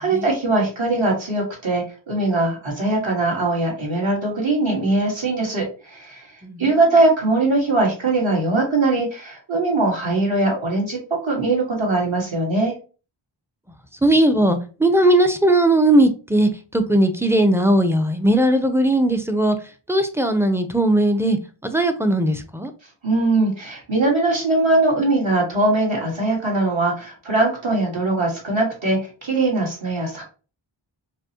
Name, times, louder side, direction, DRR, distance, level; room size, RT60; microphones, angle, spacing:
voice 1, 0.0-6.3 6.6-12.7 23.0-30.2, right 2 dB, 70° right, 1.6 m, -21 dB
voice 2, 14.0-19.6 19.9-22.7, right 1 dB, 5° right, 0.4 m, -18 dB
5.1 x 2.1 x 2.8 m
wide cardioid pair, 65°, 48 cm